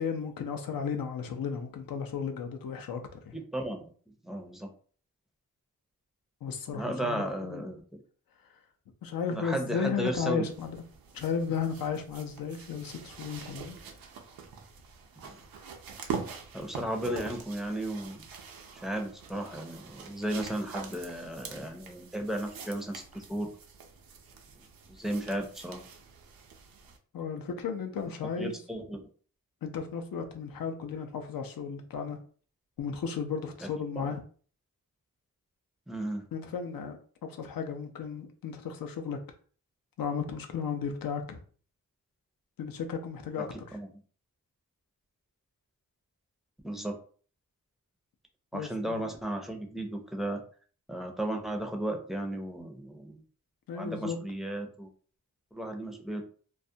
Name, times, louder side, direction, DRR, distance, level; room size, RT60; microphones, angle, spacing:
voice 1, 0.0-3.4 6.4-7.6 9.0-10.8 11.1-13.8 27.1-28.6 29.6-32.2 32.8-34.2 36.3-37.0 37.2-39.2 40.0-41.4 42.6-43.8 48.5-49.0 53.7-54.2, left 6 dB, 80° left, 0.5 m, -34 dB
voice 2, 3.3-3.9 4.2-4.7 6.7-7.8 9.3-10.4 16.5-18.2 18.8-23.5 24.9-25.8 28.4-29.1 33.6-33.7 34.0-34.1 35.9-36.2 43.7-43.9 46.6-47.0 48.5-50.4 50.9-53.2 53.7-54.9 55.5-56.2, right 1 dB, ahead, 0.5 m, -34 dB
sound 1, 10.5-27.0 28.0-28.1, right 6 dB, 90° right, 0.5 m, -44 dB
2.3 x 2.1 x 2.6 m
wide cardioid pair, 85°, 34 cm